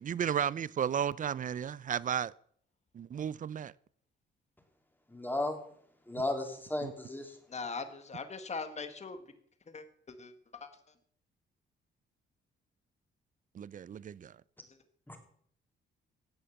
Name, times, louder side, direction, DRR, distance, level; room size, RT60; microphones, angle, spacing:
voice 1, 0.0-2.3 2.9-3.7 6.8-6.9 13.5-14.4, right 8 dB, 40° right, 0.5 m, -34 dB
voice 2, 5.1-5.6 6.1-7.4 15.1-15.2, left 2 dB, 10° left, 3.2 m, -34 dB
voice 3, 7.5-9.2 9.7-10.7, left 4 dB, 35° left, 1.9 m, -41 dB
16.5 x 6.8 x 7.2 m
cardioid pair, 90°, 20 cm